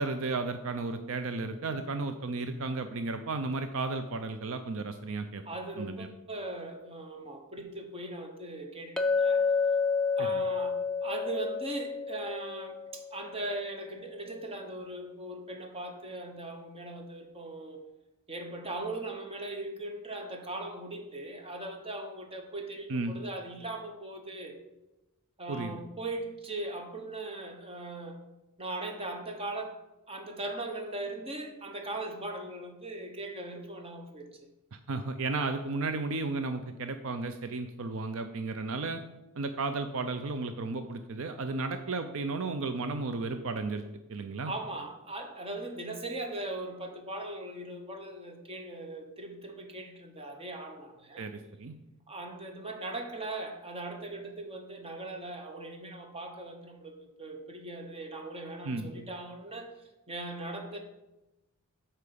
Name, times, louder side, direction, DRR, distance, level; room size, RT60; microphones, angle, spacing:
voice 1, 0.0-5.4 5.8-6.1 10.2-10.4 22.9-23.1 25.5-25.7 34.7-39.0 39.4-43.8 44.1-44.5 51.2-51.7 58.6-58.9, right 3 dB, 65° right, 8 dB, 0.5 m, -34 dB
voice 2, 5.4-9.4 10.2-17.8 18.3-24.6 25.4-28.2 28.6-34.5 44.4-51.3 52.1-60.8, right 2 dB, 25° right, 4 dB, 1.2 m, -39 dB
Chink clink, 9.0-13.4, left 5 dB, 5° left, 0.4 m, -29 dB
8.4 x 4.6 x 6.8 m, 0.99 s
head